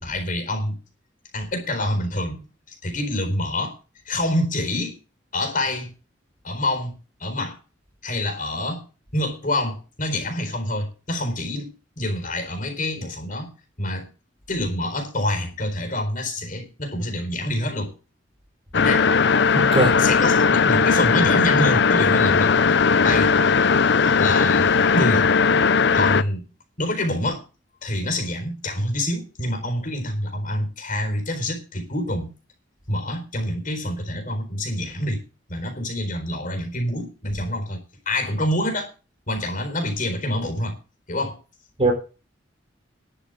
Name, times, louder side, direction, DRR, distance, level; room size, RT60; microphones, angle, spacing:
voice 1, 0.0-0.8 1.3-2.4 2.7-3.7 4.1-5.0 5.3-5.9 6.4-6.9 7.2-7.6 8.0-8.8 9.1-13.5 13.8-14.1 14.5-17.9 18.7-19.1 20.0-22.5 23.0-23.4 24.0-25.3 25.9-26.4 26.8-27.4 27.8-32.3 32.9-35.2 35.5-38.9 39.3-40.8 41.1-41.4, left 1 dB, 45° left, 4.2 m, -26 dB
sound 1, 18.7-26.2, left 5 dB, 65° left, 0.6 m, -18 dB
voice 2, 19.5-20.0 41.8-41.9, right 2 dB, 30° right, 4.2 m, -19 dB
11.5 x 6.6 x 8.1 m
head